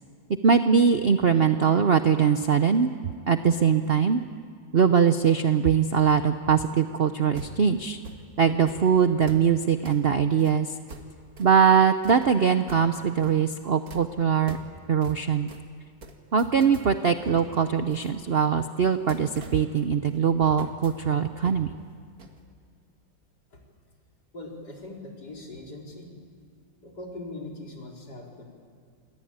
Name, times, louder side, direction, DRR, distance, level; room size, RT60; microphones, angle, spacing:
voice 1, 0.4-2.9 3.3-4.2 4.7-8.0 8.4-10.7 11.4-14.6 14.9-15.5 16.3-21.7, right 7 dB, 80° right, 9 dB, 0.5 m, -22 dB
sound 1, 7.3-8.2 8.7-8.8 9.2-9.5 9.9-10.1 10.4-10.6 10.9-11.6 12.0-12.9 13.2-13.6 13.9-14.1 14.5-14.7 15.0-15.2 15.5-15.6 16.0-16.9 17.3-18.5 18.9-20.2 20.6-20.9 21.4-21.7 21.9-22.0 22.2-22.4, right 2 dB, 45° right, 2.2 m, -43 dB
voice 2, 24.3-26.1 26.8-28.4, left 2 dB, 55° left, -1 dB, 4.8 m, -41 dB
27.5 x 21.5 x 8.8 m, 2.2 s
omnidirectional pair, 2.1 m